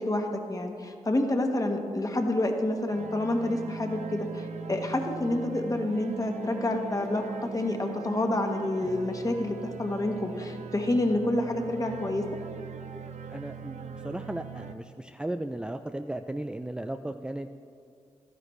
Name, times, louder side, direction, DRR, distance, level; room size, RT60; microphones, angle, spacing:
voice 1, 0.0-12.3, left 1 dB, 30° left, 4 dB, 1.3 m, -28 dB
sound 1, 2.9-14.7, right 5 dB, 65° right, 0.6 m, -40 dB
voice 2, 13.3-17.7, right 1 dB, 5° right, 7 dB, 0.4 m, -36 dB
12.5 x 10.0 x 3.2 m, 2.3 s
supercardioid pair, 50°, 13 cm